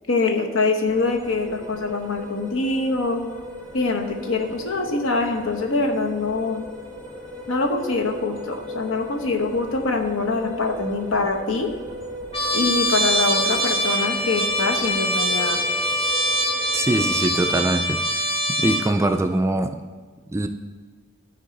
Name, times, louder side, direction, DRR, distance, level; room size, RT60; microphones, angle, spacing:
voice 1, 0.1-3.2 3.7-6.7 7.5-11.7 12.5-15.6, left 3 dB, 75° left, 4 dB, 1.0 m, -24 dB
sound 1, 0.9-17.2, left 1 dB, 5° left, 1.0 m, -38 dB
Trumpet, 12.3-18.9, equal, 30° left, 1.6 m, -23 dB
voice 2, 16.7-19.8 20.3-20.5, right 2 dB, 15° right, 7 dB, 0.3 m, -23 dB
13.0 x 4.6 x 3.9 m, 1.5 s
head